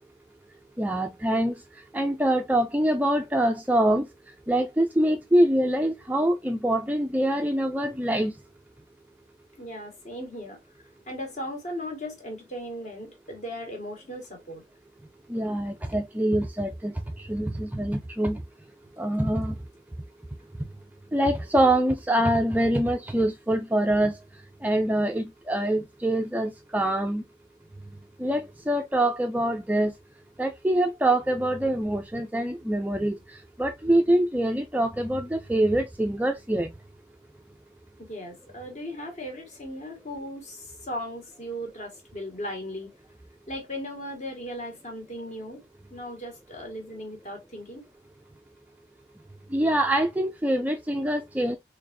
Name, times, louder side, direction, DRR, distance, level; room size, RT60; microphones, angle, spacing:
voice 1, 0.8-1.5 1.9-4.1 4.5-8.3 15.3-18.4 19.0-19.5 21.1-24.2 24.6-27.2 28.2-29.9 30.4-33.2 33.6-36.7 49.5-51.6, right 1 dB, 10° right, 0.4 m, -24 dB
voice 2, 9.6-10.6 11.1-14.6 38.0-42.9 43.5-45.6 45.9-47.8, equal, 40° left, 1.5 m, -37 dB
3.9 x 3.4 x 2.6 m
head